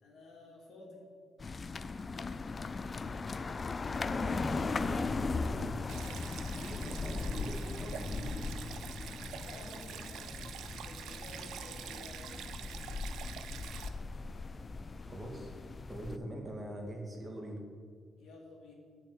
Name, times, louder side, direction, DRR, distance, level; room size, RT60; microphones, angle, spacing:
voice 1, 0.0-1.0 9.3-12.4 18.2-18.7, left 2 dB, 75° left, -1 dB, 2.7 m, -53 dB
sound 1, 1.4-16.2, left 4 dB, 35° left, 0.4 m, -38 dB
voice 2, 4.1-6.0 6.6-8.3 15.1-15.5 15.9-17.6, right 1 dB, 20° right, 1 dB, 2.1 m, -43 dB
Stream, 5.9-13.9, right 9 dB, 80° right, 0.6 m, -46 dB
8.5 x 5.8 x 7.9 m, 2.1 s
cardioid pair, 90°, 0 cm